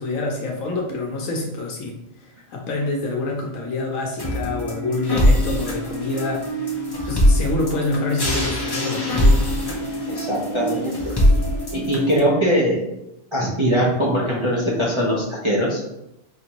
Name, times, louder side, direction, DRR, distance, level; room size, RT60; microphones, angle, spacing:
voice 1, 0.0-6.7 7.0-9.5, left 2 dB, 75° left, 0 dB, 1.1 m, -27 dB
sound 1, 4.2-12.2, left 1 dB, 25° left, 0.6 m, -21 dB
voice 2, 10.1-11.2 11.7-12.9 13.3-15.8, equal, 30° right, -6 dB, 0.6 m, -21 dB
4.9 x 2.6 x 2.9 m, 0.87 s
omnidirectional pair, 1.4 m